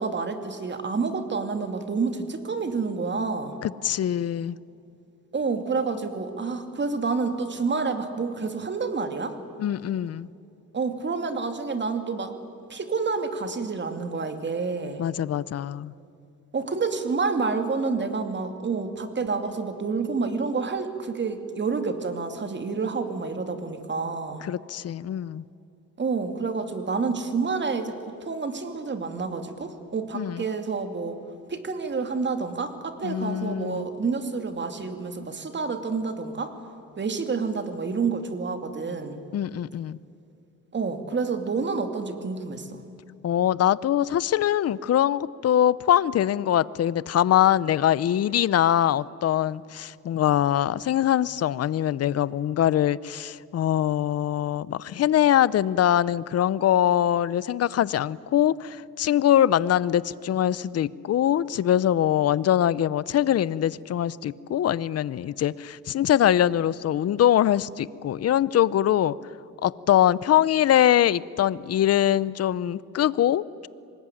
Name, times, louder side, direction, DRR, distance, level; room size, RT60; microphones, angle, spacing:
voice 1, 0.0-3.6 5.3-9.4 10.7-12.3 12.7-15.0 16.5-24.5 26.0-31.2 31.5-36.5 37.0-39.2 40.7-42.8, right 4 dB, 35° right, 7 dB, 2.7 m, -28 dB
voice 2, 3.6-4.6 9.6-10.3 15.0-15.9 24.4-25.4 30.1-30.4 33.0-33.9 39.3-40.0 43.2-69.2 69.6-73.7, left 11 dB, 55° left, 20 dB, 0.7 m, -23 dB
25.0 x 20.5 x 10.0 m, 2.6 s
cardioid pair, 90°, 30 cm